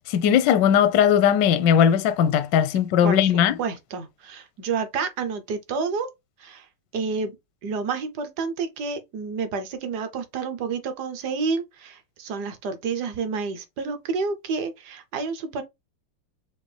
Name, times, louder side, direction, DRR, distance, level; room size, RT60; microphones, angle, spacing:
voice 1, 0.1-3.6, left 9 dB, 75° left, 1.0 m, -19 dB
voice 2, 3.0-6.1 6.4-6.7 6.9-7.3 7.6-15.6, right 5 dB, 65° right, 1.1 m, -29 dB
5.2 x 2.5 x 3.2 m
omnidirectional pair, 2.4 m